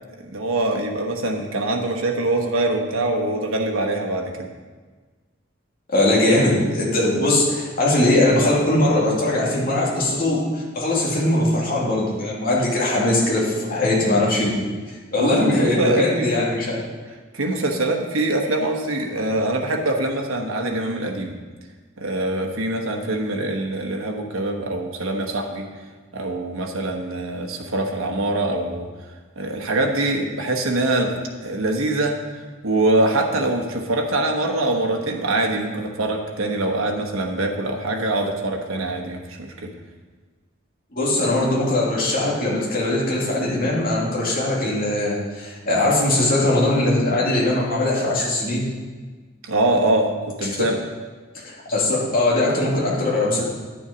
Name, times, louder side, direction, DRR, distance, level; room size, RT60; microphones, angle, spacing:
voice 1, 0.2-4.5 15.2-16.3 17.3-21.3 22.0-25.7 26.1-28.9 29.4-32.2 32.6-39.7 49.4-50.7, right 2 dB, 85° right, 2 dB, 1.1 m, -23 dB
voice 2, 5.9-14.5 15.1-16.8 40.9-48.6 51.3-53.4, left 1 dB, 45° left, -5 dB, 2.5 m, -20 dB
10.0 x 7.1 x 5.0 m, 1.4 s
head